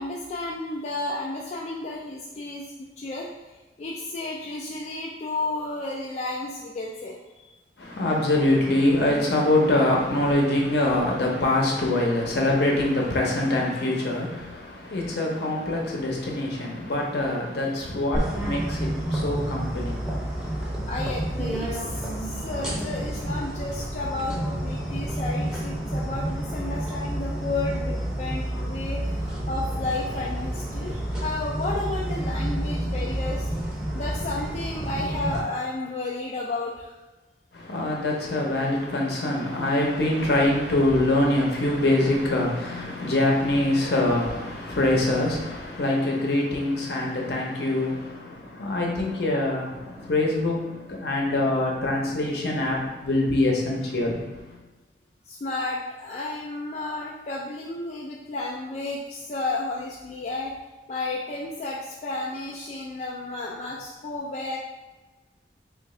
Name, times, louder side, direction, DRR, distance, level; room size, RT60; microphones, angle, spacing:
voice 1, 0.0-2.6 3.0-3.3 3.8-7.2 20.9-33.5 33.9-37.0 55.3-60.5 60.9-64.6, left 2 dB, 40° left, -3 dB, 0.3 m, -32 dB
voice 2, 7.8-20.6 37.5-54.2, left 1 dB, 65° left, -1 dB, 0.7 m, -24 dB
sound 1, 18.1-35.4, right 1 dB, 5° right, 0.6 m, -29 dB
3.0 x 2.4 x 3.7 m, 1.2 s
head